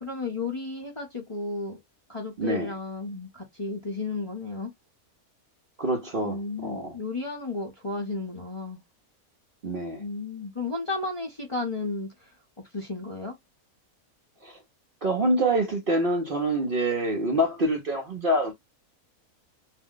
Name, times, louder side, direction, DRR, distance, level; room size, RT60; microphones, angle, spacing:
voice 1, 0.0-1.8 2.1-4.7 6.2-8.8 10.0-12.3 12.7-13.4, left 3 dB, 30° left, 0.7 m, -33 dB
voice 2, 2.4-2.7 5.8-6.9 9.6-10.0 14.4-14.6 15.0-18.5, right 1 dB, 50° right, 0.7 m, -26 dB
2.6 x 2.1 x 3.6 m
omnidirectional pair, 1.5 m